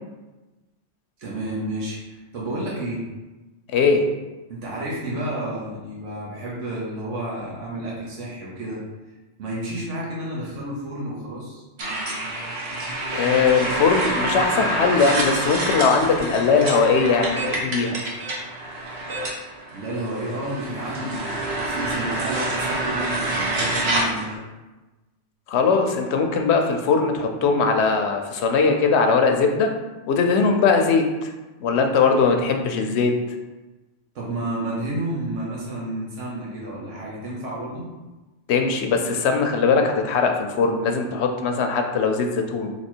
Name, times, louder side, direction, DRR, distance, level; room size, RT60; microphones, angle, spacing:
voice 1, 1.2-3.1 4.5-8.8 9.4-11.6 19.7-21.2 21.6-24.4 34.1-37.9, right 1 dB, 85° right, -5 dB, 1.3 m, -31 dB
voice 2, 3.7-4.0 13.1-18.0 25.5-29.7 30.1-31.3 31.6-33.1 38.5-42.7, left 5 dB, 70° left, 4 dB, 0.8 m, -20 dB
sound 1, 11.8-24.3, right 1 dB, 60° right, 1.1 m, -27 dB
4.0 x 2.9 x 4.4 m, 1.1 s
omnidirectional pair, 1.2 m